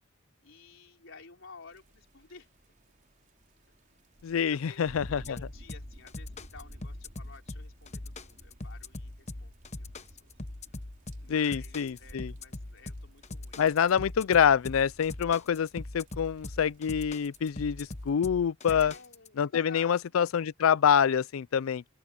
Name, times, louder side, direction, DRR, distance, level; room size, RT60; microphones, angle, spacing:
voice 1, 0.4-2.5 3.7-3.8 4.3-4.9 5.3-10.3 11.2-13.6 18.7-20.1, left 4 dB, 70° left, 4.9 m, -53 dB
sound 1, 1.7-18.1, equal, 40° right, 4.6 m, -55 dB
voice 2, 4.2-5.4 11.3-12.3 13.6-18.9 19.4-21.9, left 7 dB, 85° left, 0.4 m, -26 dB
sound 2, 5.0-19.3, left 2 dB, 35° left, 1.0 m, -41 dB
open air
head